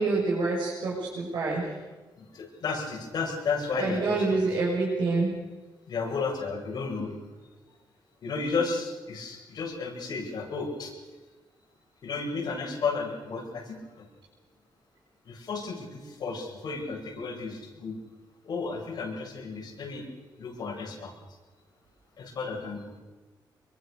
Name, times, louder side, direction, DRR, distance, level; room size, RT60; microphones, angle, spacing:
voice 1, 0.0-1.7 3.8-5.3, right 3 dB, 80° right, -5 dB, 6.4 m, -27 dB
voice 2, 2.2-4.4 5.9-7.2 8.2-10.9 12.0-13.8 15.3-18.0 18.4-20.1 20.4-21.1 22.2-23.0, left 4 dB, 55° left, -1 dB, 7.7 m, -33 dB
26.0 x 22.5 x 6.7 m, 1.2 s
wide cardioid pair, 150°, 8 cm